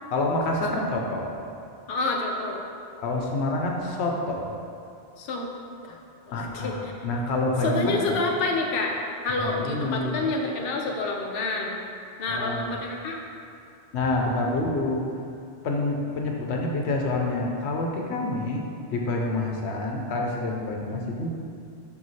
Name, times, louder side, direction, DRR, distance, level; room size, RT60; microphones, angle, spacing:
voice 1, 0.1-1.4 3.0-4.5 6.3-8.1 9.4-10.2 12.3-12.7 13.9-15.0 15.6-18.6 18.9-21.3, left 2 dB, 85° left, 0 dB, 1.0 m, -27 dB
voice 2, 1.9-2.6 5.2-5.5 5.9-6.0 6.3-6.9 7.6-9.0 9.2-11.8 12.2-13.2, left 3 dB, 65° left, 0 dB, 0.8 m, -28 dB
5.7 x 4.7 x 4.1 m, 2.5 s
omnidirectional pair, 1.1 m